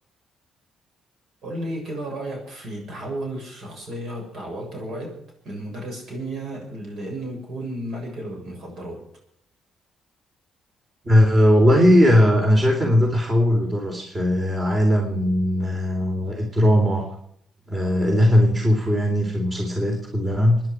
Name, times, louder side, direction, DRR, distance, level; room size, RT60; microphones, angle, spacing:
voice 1, 1.4-5.2 5.4-9.0, right 1 dB, 65° right, 0 dB, 7.5 m, -33 dB
voice 2, 11.0-17.1 17.7-20.6, equal, 25° right, 1 dB, 3.7 m, -19 dB
26.0 x 10.5 x 4.9 m, 0.69 s
cardioid pair, 90°, 0 cm